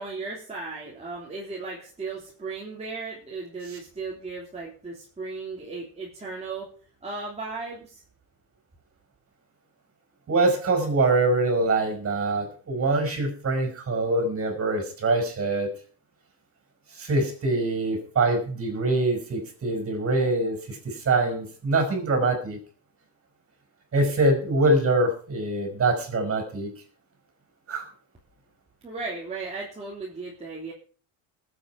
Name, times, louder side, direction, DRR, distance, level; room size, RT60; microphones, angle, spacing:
voice 1, 0.0-6.7 7.0-8.0 28.8-30.7, right 3 dB, 15° right, -5 dB, 3.2 m, -36 dB
voice 2, 10.3-15.7 16.9-22.6 23.9-26.7 27.7-27.9, right 2 dB, 30° right, 6 dB, 5.2 m, -24 dB
20.0 x 8.0 x 4.6 m, 0.41 s
cardioid pair, 125°, 44 cm